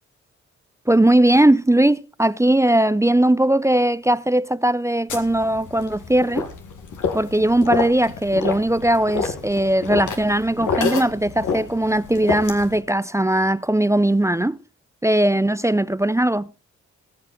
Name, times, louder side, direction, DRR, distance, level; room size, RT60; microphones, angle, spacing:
voice 1, 0.9-6.5 7.1-14.6 15.0-16.5, right 1 dB, 10° right, 0.6 m, -19 dB
sound 1, 5.1-12.8, left 5 dB, 80° left, 2.0 m, -29 dB
19.0 x 7.8 x 4.2 m
supercardioid pair, 45°, 31 cm